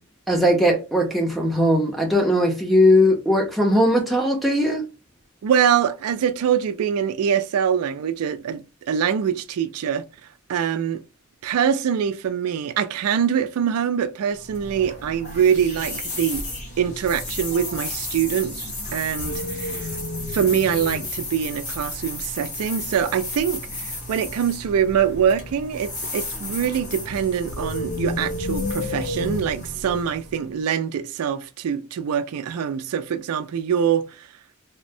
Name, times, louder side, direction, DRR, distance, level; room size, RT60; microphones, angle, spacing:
voice 1, 0.3-4.8, equal, ahead, 0.6 m, -19 dB
voice 2, 5.4-10.0 10.5-11.0 11.4-16.4 16.8-20.0 20.3-34.3, right 8 dB, 80° right, 0.3 m, -24 dB
sound 1, 14.3-30.5, left 2 dB, 35° left, 1.0 m, -34 dB
sound 2, 15.3-15.8 17.1-21.3 21.8-21.9 22.6-23.9 25.1-30.0, left 2 dB, 85° left, 0.5 m, -33 dB
3.3 x 2.0 x 2.6 m
head